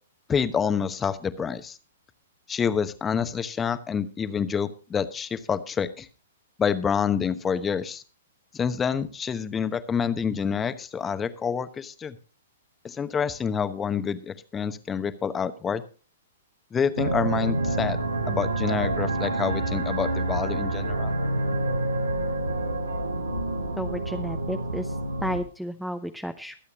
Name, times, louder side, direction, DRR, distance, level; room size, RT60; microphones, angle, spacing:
voice 1, 0.3-1.8 2.5-6.1 6.6-8.0 8.5-12.2 12.8-15.8 16.7-18.0 18.3-21.1, left 7 dB, 15° left, 12 dB, 1.0 m, -27 dB
sound 1, 17.0-25.4, right 2 dB, 90° right, 1.6 m, -27 dB
voice 2, 23.8-25.0 25.2-26.6, equal, ahead, 8 dB, 0.7 m, -32 dB
23.0 x 8.2 x 2.9 m, 0.35 s
figure-of-eight pair, 110°, 0 cm